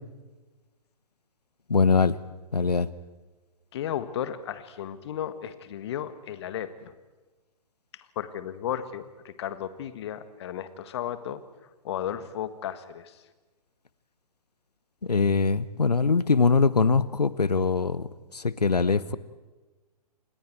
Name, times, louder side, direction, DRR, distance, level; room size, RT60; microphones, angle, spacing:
voice 1, 1.7-2.2 2.5-2.9 15.1-18.1 18.3-19.2, left 4 dB, 75° left, 17 dB, 1.1 m, -22 dB
voice 2, 3.7-6.9 8.2-11.4 11.8-13.2, left 10 dB, 40° left, 12 dB, 1.7 m, -34 dB
28.5 x 26.0 x 4.7 m, 1.2 s
figure-of-eight pair, 125°, 20 cm